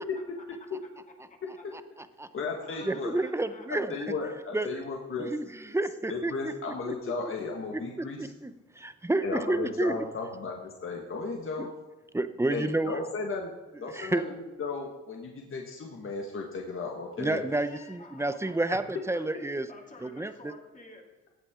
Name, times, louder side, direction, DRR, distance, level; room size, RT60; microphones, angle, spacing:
voice 1, 1.1-1.7 2.3-3.7 17.5-19.2 19.7-21.0, left 2 dB, 25° left, 0 dB, 2.6 m, -51 dB
voice 2, 2.3-3.1 3.7-5.3 6.1-8.3 9.2-11.7 12.5-13.5 13.8-17.4, left 4 dB, 45° left, 1 dB, 1.6 m, -35 dB
voice 3, 2.8-4.1 4.5-4.7 5.2-6.5 6.9-7.0 7.7-7.8 8.2-9.9 11.6-11.7 12.1-13.0 13.9-14.2 17.2-19.7 20.0-20.5, right 2 dB, 10° right, 12 dB, 0.7 m, -30 dB
16.0 x 8.6 x 3.7 m, 1.2 s
cardioid pair, 90°, 30 cm